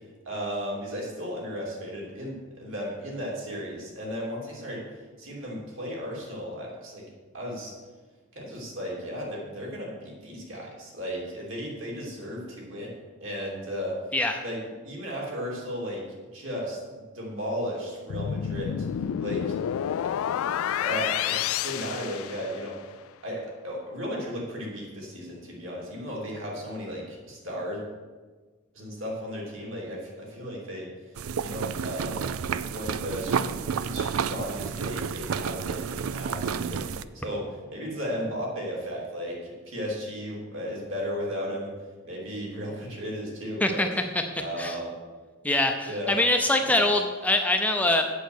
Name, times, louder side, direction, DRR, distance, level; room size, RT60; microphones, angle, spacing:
voice 1, 0.2-7.0 7.3-7.7 8.3-14.0 14.4-16.1 16.3-16.8 17.1-18.9 19.2-19.5 20.8-22.8 23.2-27.8 28.7-30.9 31.4-32.3 32.6-33.4 33.8-41.7 42.0-43.9 44.4-44.9 45.8-46.2 46.6-46.9, equal, 65° right, -3 dB, 3.4 m, -35 dB
sound 1, 18.1-22.8, left 9 dB, 85° left, 0.3 m, -29 dB
sound 2, 31.2-37.0, right 6 dB, 85° right, 0.4 m, -30 dB
voice 2, 43.6-44.8 45.4-48.0, left 1 dB, 5° left, 4 dB, 0.6 m, -24 dB
8.2 x 8.1 x 6.5 m, 1.4 s
head